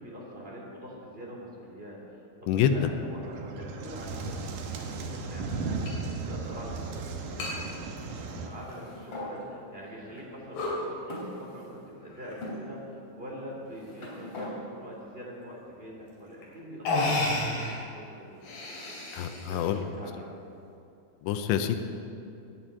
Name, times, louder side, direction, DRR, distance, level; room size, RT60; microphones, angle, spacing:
voice 1, 0.0-7.8 8.2-19.6 19.9-20.3, equal, 15° right, -3 dB, 2.1 m, -44 dB
sound 1, 3.2-8.5, right 4 dB, 70° right, 2.0 m, -36 dB
sound 2, 5.9-6.0 6.3-6.4 7.4-7.6 8.0-8.7 9.3-9.4 10.0-10.2 10.5-10.8 12.1-12.5 13.3-13.8 15.7-15.8 16.4-16.5 16.8-17.8 18.3-19.7, left 2 dB, 65° left, 4.9 m, -32 dB
sound 3, 8.5-9.3 10.2-10.3 11.1-11.9 12.4-12.6 13.5-14.5, left 1 dB, 35° left, 3.3 m, -41 dB
voice 2, 19.1-19.8 21.2-21.8, left 9 dB, 85° left, 7 dB, 3.0 m, -26 dB
11.5 x 9.9 x 8.9 m, 2.6 s
omnidirectional pair, 5.1 m